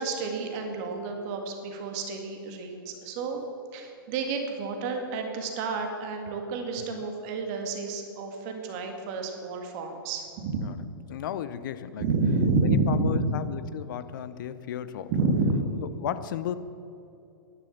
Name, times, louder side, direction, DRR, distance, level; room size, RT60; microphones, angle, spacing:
voice 1, 0.0-3.4 3.7-10.7 12.0-13.3 15.1-15.6, right 3 dB, 45° right, 4 dB, 2.0 m, -29 dB
voice 2, 11.1-12.1 12.6-15.1 16.0-16.6, left 10 dB, 60° left, 14 dB, 0.7 m, -34 dB
11.0 x 10.5 x 7.2 m, 2.7 s
hypercardioid pair, 110°, 12 cm